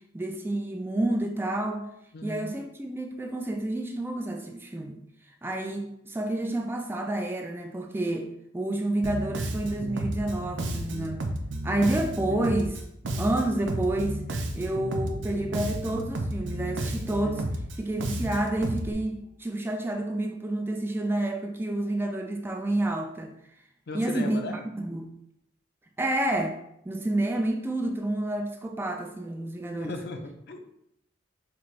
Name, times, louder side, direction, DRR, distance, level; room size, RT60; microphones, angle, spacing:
voice 1, 0.1-1.9 2.2-5.0 5.4-11.3 11.6-12.8 13.2-14.2 14.5-17.4 17.8-23.3 23.9-24.4 24.7-25.1 26.0-26.6 26.9-29.9, right 1 dB, 10° right, 3 dB, 0.3 m, -29 dB
voice 2, 2.1-2.5 15.4-15.8 23.9-24.6 29.7-30.6, left 2 dB, 55° left, 4 dB, 0.6 m, -37 dB
Bass guitar, 9.0-18.9, right 1 dB, 70° right, 0.6 m, -32 dB
5.9 x 2.4 x 3.1 m, 0.76 s
head